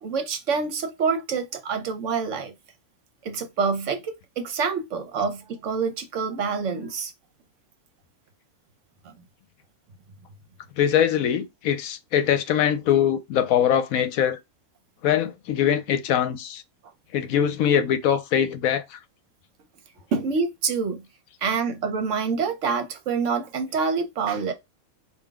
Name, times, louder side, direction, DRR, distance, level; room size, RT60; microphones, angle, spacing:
voice 1, 0.0-2.5 3.2-7.1 9.0-9.1 20.1-21.0 21.4-24.5, right 5 dB, 65° right, 1.0 m, -26 dB
voice 2, 10.8-14.4 15.0-16.6 17.1-19.0, left 9 dB, 75° left, 1.0 m, -22 dB
3.8 x 2.5 x 3.4 m
omnidirectional pair, 1.5 m